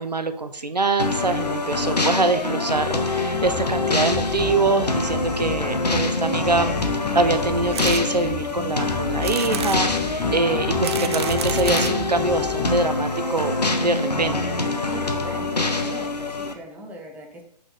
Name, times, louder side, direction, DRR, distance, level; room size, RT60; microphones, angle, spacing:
voice 1, 0.0-6.7 7.1-14.4, right 3 dB, 85° right, 9 dB, 0.6 m, -24 dB
sound 1, 1.0-16.5, left 3 dB, 85° left, 0.9 m, -25 dB
sound 2, 3.3-12.8, left 4 dB, 30° left, 1.0 m, -33 dB
sound 3, 7.7-8.0 8.5-8.6 9.2-9.8 10.6-12.0 12.8-12.9 13.1-13.2 13.4-13.5, right 8 dB, 40° right, 0.5 m, -31 dB
voice 2, 14.8-17.4, right 1 dB, 5° right, 1 dB, 0.8 m, -39 dB
5.7 x 4.1 x 5.1 m, 0.72 s
figure-of-eight pair, 125°, 21 cm